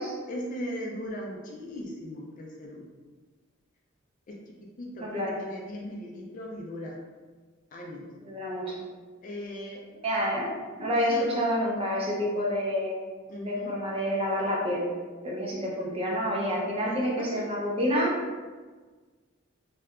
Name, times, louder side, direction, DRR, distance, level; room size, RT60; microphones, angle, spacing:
voice 1, 0.3-2.9 4.3-7.0 7.7-8.1 9.2-9.9 11.1-11.3 13.3-13.8 16.9-17.5, equal, 40° left, -1 dB, 0.3 m, -38 dB
voice 2, 5.0-5.4 8.2-8.8 10.0-10.5 10.8-13.0 13.4-14.9 15.2-18.2, equal, 30° right, -4 dB, 0.5 m, -28 dB
2.7 x 2.2 x 2.3 m, 1.4 s
head